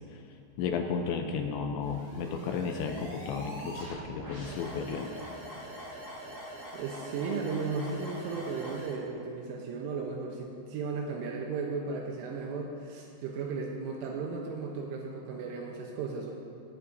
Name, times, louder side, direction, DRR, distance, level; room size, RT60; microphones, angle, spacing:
voice 1, 0.6-5.1, left 5 dB, 80° left, 4 dB, 2.8 m, -33 dB
sound 1, 1.8-9.0, equal, 25° right, 3.9 m, -43 dB
voice 2, 6.7-16.3, right 4 dB, 80° right, 0 dB, 3.4 m, -35 dB
17.5 x 16.5 x 2.7 m, 2.6 s
omnidirectional pair, 5.8 m